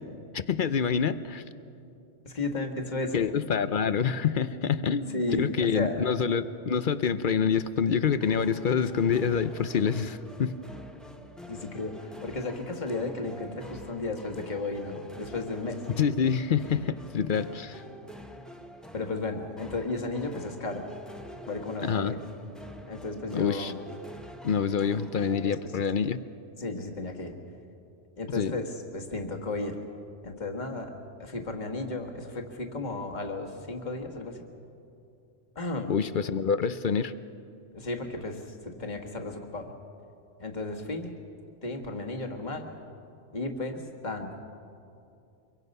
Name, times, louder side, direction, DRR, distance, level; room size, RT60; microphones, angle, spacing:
voice 1, 0.3-1.4 3.1-10.6 16.0-17.8 21.8-22.1 23.3-23.7 24.4-26.2 28.4-28.5 35.9-37.1, left 6 dB, 55° left, 13 dB, 0.7 m, -26 dB
voice 2, 2.2-3.2 5.1-6.0 11.5-15.8 18.9-20.9 21.4-22.2 22.9-23.8 25.4-25.7 26.6-27.3 28.2-29.8 30.2-30.9 31.2-34.4 35.5-36.0 37.7-39.7 40.4-41.2 41.6-42.7 43.3-44.4, left 2 dB, 35° left, 3 dB, 1.7 m, -34 dB
sound 1, 8.0-26.2, equal, ahead, 1.0 m, -46 dB
25.0 x 23.5 x 5.4 m, 2.6 s
omnidirectional pair, 1.3 m